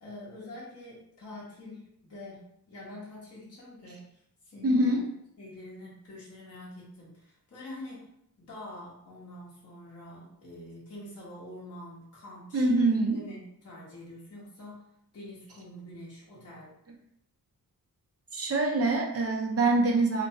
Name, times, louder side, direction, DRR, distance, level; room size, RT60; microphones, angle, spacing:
voice 1, 0.0-5.0 5.4-8.1 8.4-14.8 15.1-16.7, left 1 dB, 40° left, -7 dB, 1.1 m, -46 dB
voice 2, 4.6-5.0 12.5-13.2 18.3-20.3, right 2 dB, 40° right, 0 dB, 0.6 m, -25 dB
2.5 x 2.1 x 2.8 m, 0.74 s
cardioid pair, 85°, 37 cm